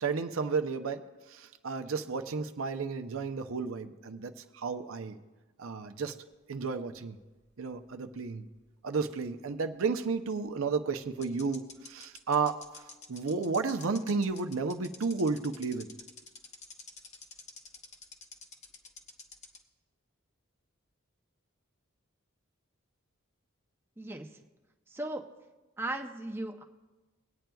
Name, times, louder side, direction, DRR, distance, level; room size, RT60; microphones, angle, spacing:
voice 1, 0.0-5.2 5.6-6.1 6.5-7.2 7.6-8.5 8.8-12.6 13.1-15.9, right 4 dB, 80° right, 8 dB, 0.6 m, -32 dB
sound 1, 6.7-8.3 8.5-8.6 10.4-10.5 11.2-19.6, left 4 dB, 35° left, 0.9 m, -49 dB
voice 2, 24.0-24.3 24.9-25.2 25.8-26.6, right 2 dB, 10° right, 3 dB, 0.6 m, -36 dB
22.5 x 8.9 x 2.3 m, 1.2 s
head